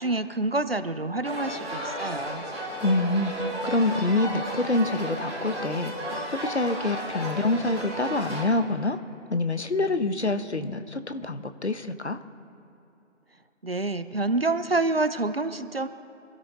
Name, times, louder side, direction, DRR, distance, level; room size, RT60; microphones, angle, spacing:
voice 1, 0.0-2.5 13.6-15.9, right 2 dB, 50° right, 11 dB, 0.8 m, -27 dB
sound 1, 1.2-8.4, right 1 dB, ahead, 2.6 m, -33 dB
voice 2, 2.8-5.9 6.3-9.0 9.3-12.2, left 2 dB, 60° left, 9 dB, 1.0 m, -26 dB
26.0 x 13.0 x 3.2 m, 2.9 s
figure-of-eight pair, 165°, 38 cm